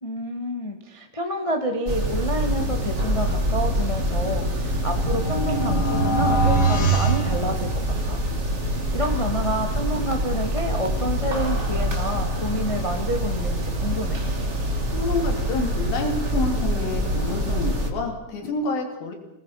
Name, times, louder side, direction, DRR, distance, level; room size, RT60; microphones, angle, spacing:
voice 1, 0.0-8.2 8.9-14.2, equal, 60° left, 3 dB, 0.3 m, -29 dB
sound 1, 1.9-17.9, equal, 25° right, 1.9 m, -25 dB
sound 2, 4.2-8.2, right 3 dB, 25° left, 1.8 m, -24 dB
voice 2, 14.9-19.1, left 3 dB, 80° left, 3 dB, 4.7 m, -28 dB
28.5 x 19.5 x 5.8 m, 0.94 s
omnidirectional pair, 4.1 m